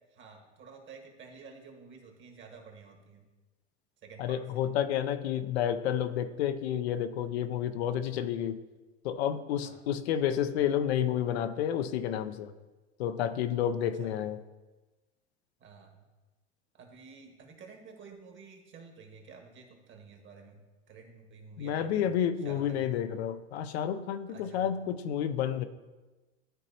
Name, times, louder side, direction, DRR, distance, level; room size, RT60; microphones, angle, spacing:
voice 1, 0.0-3.3 4.0-4.4 9.6-9.8 13.8-14.1 15.6-16.0 16.7-22.9 24.3-24.7, right 5 dB, 35° right, 3 dB, 1.6 m, -51 dB
voice 2, 4.2-8.6 9.0-12.5 13.0-14.4 21.6-25.6, left 9 dB, 75° left, 10 dB, 0.6 m, -30 dB
12.5 x 4.1 x 2.8 m, 1.2 s
hypercardioid pair, 110°, 32 cm